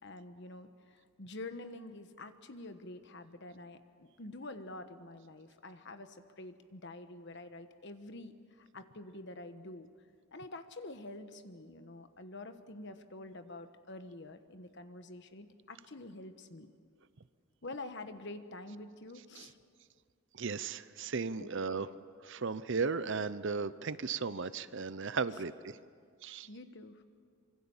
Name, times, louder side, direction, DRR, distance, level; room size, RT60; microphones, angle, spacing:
voice 1, 0.0-9.9 10.3-16.7 17.6-19.6 21.4-21.8 26.4-27.0, left 2 dB, 50° left, 9 dB, 1.3 m, -47 dB
voice 2, 20.3-21.9 22.2-25.8 26.2-26.5, right 4 dB, 55° right, 15 dB, 0.7 m, -35 dB
25.5 x 23.5 x 7.2 m, 2.1 s
head